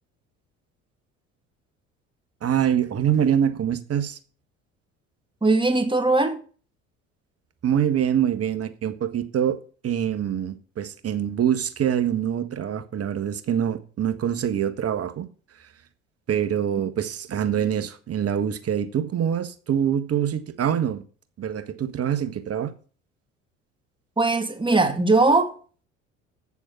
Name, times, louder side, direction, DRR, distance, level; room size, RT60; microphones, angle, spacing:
voice 1, 2.4-4.2 7.6-9.6 9.8-15.2 15.6-15.7 16.3-21.0 21.4-22.7, right 9 dB, 40° right, 1.5 m, -25 dB
voice 2, 5.4-6.4 24.2-25.6, right 3 dB, 15° right, 2.1 m, -20 dB
8.4 x 7.1 x 5.9 m
figure-of-eight pair, 60°, 38 cm